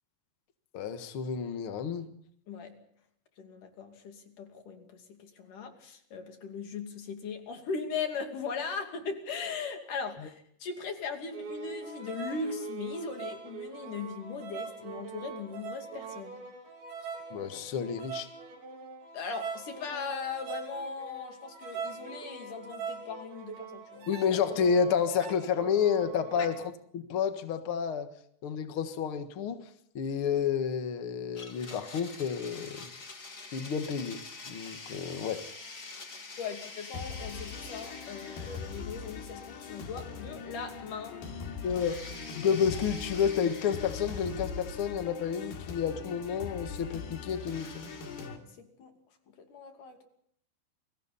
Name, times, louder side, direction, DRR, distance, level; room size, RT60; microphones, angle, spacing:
voice 1, 0.7-2.1 10.2-10.3 17.3-18.3 24.1-28.1 28.4-29.6 29.9-32.9 33.5-34.2 34.5-35.4 41.6-47.8, left 7 dB, 85° left, 8 dB, 1.2 m, -30 dB
voice 2, 2.5-2.8 3.4-16.4 19.1-24.1 26.4-26.5 36.4-41.2 48.2-48.9 49.5-50.1, left 5 dB, 50° left, 4 dB, 3.9 m, -39 dB
sound 1, 11.3-26.7, right 5 dB, 85° right, 5.8 m, -42 dB
Domestic sounds home sounds, 31.3-40.5 40.8-40.9 41.6-45.6 47.4-48.3, left 3 dB, 30° left, 2.1 m, -47 dB
sound 2, 36.9-48.4, left 5 dB, 65° left, 4.4 m, -41 dB
30.0 x 23.0 x 4.2 m, 0.66 s
omnidirectional pair, 5.1 m